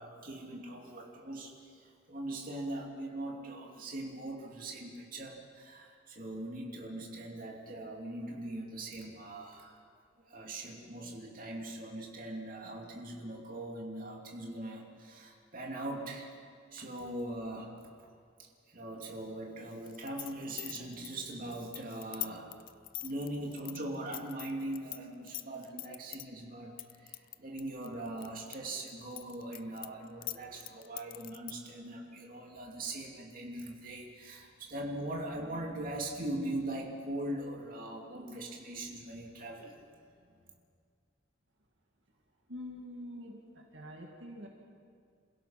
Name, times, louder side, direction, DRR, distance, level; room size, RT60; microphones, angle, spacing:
voice 1, 0.0-9.8 10.3-16.3 16.7-17.8 18.7-40.1, right 1 dB, 45° right, -1 dB, 2.8 m, -41 dB
sound 1, 19.9-25.0 25.3-26.2 26.8-28.6 28.9-31.7, left 17 dB, 45° left, 0.5 m, -42 dB
voice 2, 42.5-44.5, left 1 dB, 70° right, 0 dB, 2.1 m, -45 dB
27.5 x 16.5 x 5.9 m, 2.2 s
head